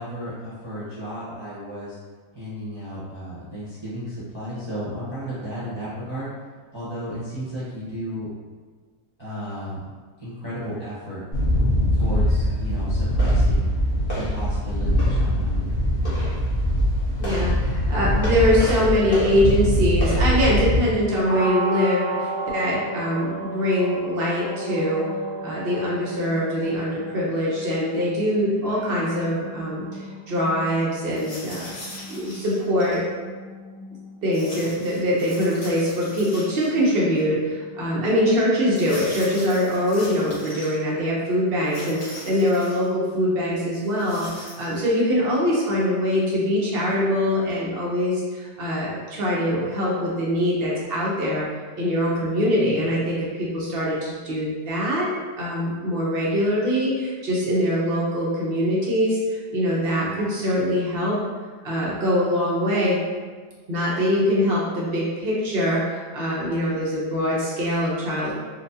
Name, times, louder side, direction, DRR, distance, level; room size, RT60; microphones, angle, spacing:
voice 1, 0.0-2.0 2.3-6.3 6.7-8.3 9.2-9.8 10.2-11.2 11.9-13.7 14.1-15.7, equal, 20° right, -12 dB, 0.7 m, -33 dB
sound 1, 11.3-20.8, equal, 40° left, 1.0 m, -22 dB
voice 2, 17.2-25.1 25.4-30.0 30.3-31.7 32.1-33.0 34.2-51.4 51.8-61.2 61.6-63.0 63.7-68.3, equal, 55° right, -5 dB, 0.6 m, -23 dB
sound 2, 21.2-41.0, right 2 dB, 10° left, 0.9 m, -36 dB
sound 3, 31.1-33.0 34.3-36.9 37.2-37.3 38.7-40.7 41.6-42.9 43.8-44.8, left 1 dB, 70° left, 1.7 m, -41 dB
4.0 x 2.2 x 2.6 m, 1.5 s
omnidirectional pair, 1.8 m